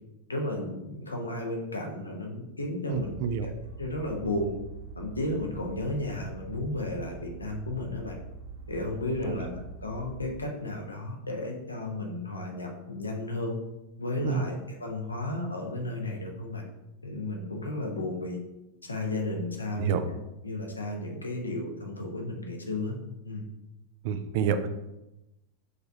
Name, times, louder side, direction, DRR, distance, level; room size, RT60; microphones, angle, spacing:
voice 1, 0.3-3.1 3.4-3.5 3.8-4.6 5.0-8.1 8.7-13.6 14.0-16.6 17.0-18.4 18.9-20.1 20.4-22.9 23.2-23.4, left 2 dB, 80° left, 1 dB, 0.8 m, -33 dB
voice 2, 2.9-3.5 9.3-9.4 14.2-14.4 19.8-20.0 24.0-24.7, right 7 dB, 50° right, 9 dB, 0.4 m, -28 dB
sound 1, 2.9-10.3, right 5 dB, 75° right, 0.7 m, -44 dB
5.0 x 3.4 x 2.7 m, 0.96 s
figure-of-eight pair, 90°, 0 cm